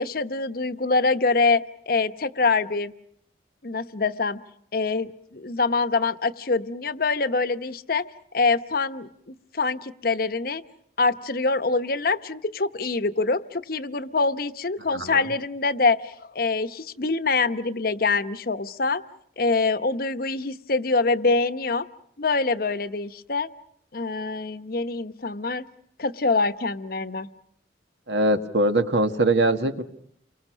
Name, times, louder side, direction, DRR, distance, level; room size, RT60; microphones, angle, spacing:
voice 1, 0.0-2.9 3.6-4.4 4.7-8.0 8.3-10.6 11.0-19.0 19.4-21.9 22.2-23.5 23.9-25.6 26.0-27.3, left 3 dB, 55° left, 11 dB, 0.9 m, -25 dB
voice 2, 14.9-15.3 28.1-29.8, right 1 dB, 75° right, 8 dB, 1.8 m, -22 dB
29.0 x 23.5 x 6.3 m, 0.70 s
head